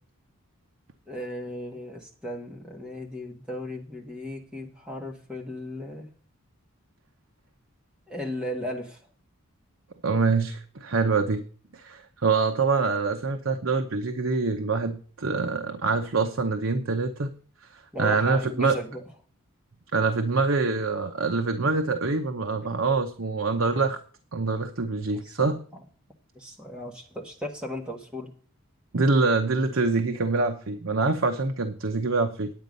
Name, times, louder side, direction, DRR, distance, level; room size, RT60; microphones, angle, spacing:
voice 1, 1.1-6.1 8.1-9.0 17.9-19.0 25.1-25.5 26.4-28.3, left 1 dB, 5° right, -1 dB, 1.7 m, -36 dB
voice 2, 10.0-11.4 11.7-17.3 17.7-18.8 19.9-24.0 24.3-25.6 28.9-32.5, right 4 dB, 60° right, 6 dB, 0.8 m, -25 dB
9.3 x 9.3 x 5.3 m, 0.43 s
head